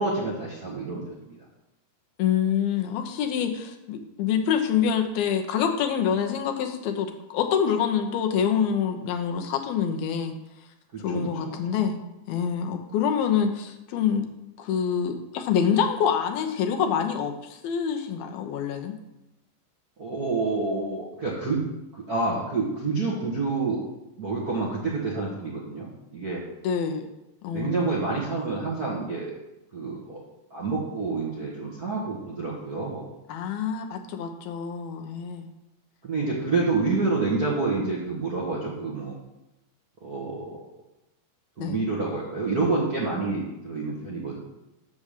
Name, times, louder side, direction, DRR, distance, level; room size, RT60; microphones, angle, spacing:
voice 1, 0.0-1.4 10.9-11.6 20.0-21.6 21.9-23.8 24.2-26.4 27.5-29.3 29.7-30.2 30.5-33.1 36.0-39.2 40.0-40.6 41.6-44.4, right 3 dB, 55° right, -6 dB, 1.0 m, -28 dB
voice 2, 2.2-10.3 11.0-12.0 12.3-14.3 14.6-18.9 26.6-27.1 27.4-28.0 33.3-35.5 36.2-36.7 41.6-41.8, left 7 dB, 90° left, 4 dB, 2.9 m, -26 dB
7.4 x 7.0 x 6.6 m, 0.94 s
omnidirectional pair, 4.2 m